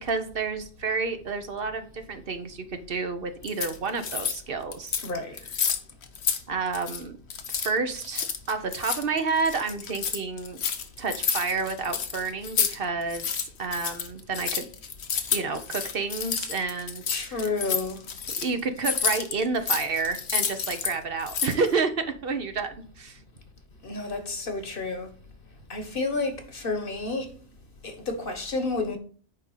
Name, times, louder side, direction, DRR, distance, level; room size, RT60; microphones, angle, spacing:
voice 1, 0.0-5.0 6.5-7.2 7.5-10.6 11.0-13.3 13.6-14.7 15.3-17.5 18.4-23.2, right 4 dB, 60° right, 1.1 m, -30 dB
sound 1, 3.4-4.4 4.7-5.1 5.4-6.4 6.7-7.0 7.3-12.8 13.0-20.9 21.2-21.7, left 7 dB, 85° left, 1.2 m, -30 dB
voice 2, 5.0-5.4 17.1-18.1 23.8-25.1 25.7-27.3 27.8-29.0, left 3 dB, 55° left, 1.5 m, -30 dB
9.7 x 3.7 x 5.7 m
omnidirectional pair, 1.1 m